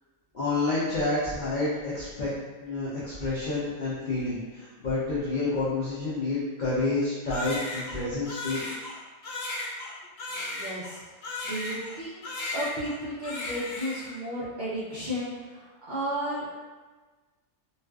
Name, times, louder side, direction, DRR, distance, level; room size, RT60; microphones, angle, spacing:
voice 1, 0.3-2.3 2.6-8.6, left 2 dB, 90° left, -9 dB, 0.4 m, -29 dB
Crying sobbing, 7.3-12.0 12.2-13.0 13.2-14.2, left 2 dB, 70° left, 0.9 m, -35 dB
voice 2, 10.3-12.3 12.5-16.5, equal, 90° right, -9 dB, 0.4 m, -34 dB
2.4 x 2.3 x 2.2 m, 1.3 s
omnidirectional pair, 1.5 m